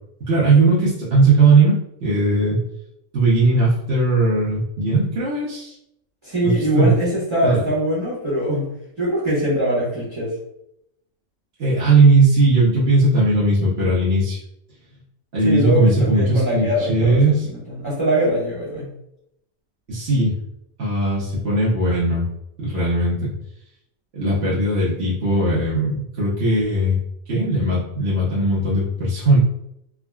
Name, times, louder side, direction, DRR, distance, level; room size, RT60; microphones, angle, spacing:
voice 1, 0.3-2.6 3.1-5.7 6.4-7.0 7.4-7.6 11.6-14.4 15.3-17.5 19.9-20.3 20.8-22.3 22.6-23.3 24.1-27.0 27.3-29.4, right 2 dB, 55° right, -8 dB, 0.9 m, -18 dB
voice 2, 6.2-8.7 9.0-10.3 15.4-18.9, equal, 25° right, -9 dB, 0.9 m, -22 dB
3.5 x 2.2 x 2.2 m, 0.78 s
omnidirectional pair, 1.4 m